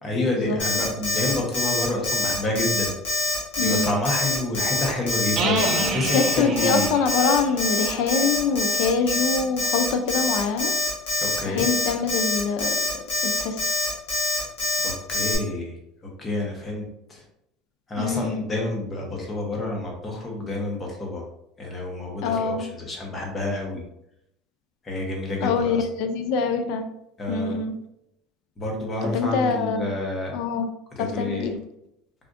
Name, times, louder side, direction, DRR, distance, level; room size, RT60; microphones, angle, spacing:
voice 1, 0.0-3.0 3.6-6.9 11.2-11.6 14.8-15.8 16.0-16.8 17.1-17.2 17.9-21.2 21.6-23.8 24.8-25.8 27.2-27.6 28.6-30.4 31.0-31.5, left 2 dB, 20° left, 0 dB, 0.8 m, -28 dB
Alarm, 0.6-15.4, left 2 dB, 85° left, 1.4 m, -25 dB
voice 2, 3.6-4.0 5.4-10.7 11.4-13.6 18.0-18.4 22.2-22.7 25.4-26.9 27.3-27.7 29.0-29.9 30.3-30.7 31.0-31.6, left 5 dB, 65° left, 7 dB, 0.4 m, -25 dB
sound 1, 5.4-9.0, right 5 dB, 35° right, 0.4 m, -31 dB
3.5 x 2.5 x 2.5 m, 0.80 s
cardioid pair, 145°, 0 cm